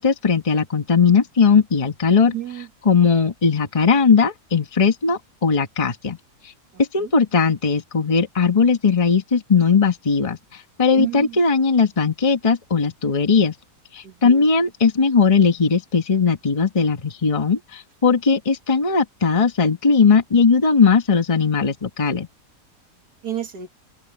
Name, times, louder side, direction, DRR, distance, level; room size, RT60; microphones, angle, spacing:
voice 1, 0.0-2.3 2.8-6.2 6.8-13.5 13.9-22.3, left 5 dB, 20° left, 1.2 m, -18 dB
voice 2, 2.3-2.7 7.0-7.1 10.9-11.4 14.0-14.4 23.2-23.7, right 11 dB, 70° right, 2.1 m, -30 dB
open air
omnidirectional pair, 1.7 m